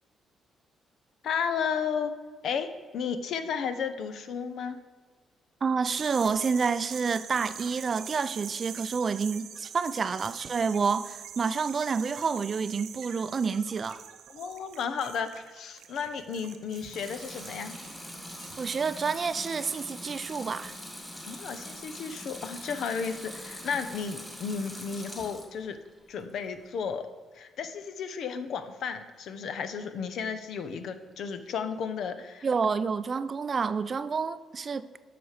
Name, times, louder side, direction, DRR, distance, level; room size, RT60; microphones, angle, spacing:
voice 1, 1.2-2.1 2.4-4.8 14.3-17.8 21.2-25.8 26.1-27.1 27.3-32.5, left 6 dB, 70° left, 0.7 m, -33 dB
voice 2, 5.6-14.0 18.6-20.7 32.4-34.9, right 5 dB, 40° right, 0.4 m, -29 dB
sound 1, 5.8-18.8, right 9 dB, 75° right, 0.7 m, -44 dB
Water tap faucet / Sink (filling or washing) / Liquid, 16.6-25.6 26.0-26.7, equal, 10° left, 2.1 m, -43 dB
7.8 x 5.9 x 6.5 m
cardioid pair, 90°, 0 cm